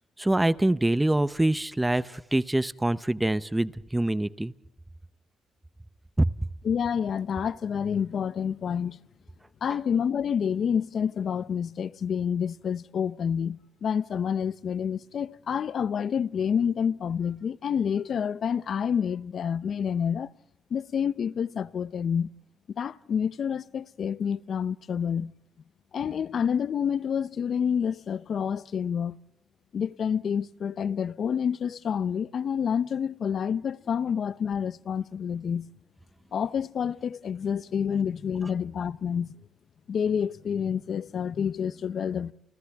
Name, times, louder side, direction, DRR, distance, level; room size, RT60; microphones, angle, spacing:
voice 1, 0.2-4.5 6.2-6.3, right 1 dB, 10° right, 0.7 m, -25 dB
voice 2, 6.6-9.0 9.6-20.3 20.7-22.3 22.7-25.3 25.9-29.2 29.7-35.7 36.3-39.3 39.9-42.3, left 7 dB, 55° left, 0.7 m, -28 dB
29.5 x 29.5 x 3.6 m
cardioid pair, 90°, 0 cm